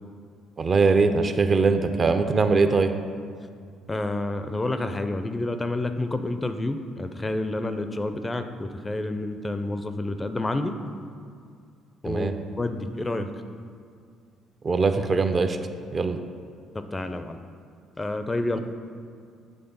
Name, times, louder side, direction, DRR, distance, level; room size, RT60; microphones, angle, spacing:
voice 1, 0.6-2.9 12.0-12.3 14.6-15.6 15.9-16.2, right 4 dB, 40° right, 8 dB, 0.4 m, -21 dB
voice 2, 3.9-10.7 12.0-12.3 12.6-13.3 16.7-17.4 18.0-18.6, left 2 dB, 20° left, 8 dB, 0.4 m, -29 dB
7.9 x 3.3 x 5.4 m, 2.2 s
supercardioid pair, 80°, 0 cm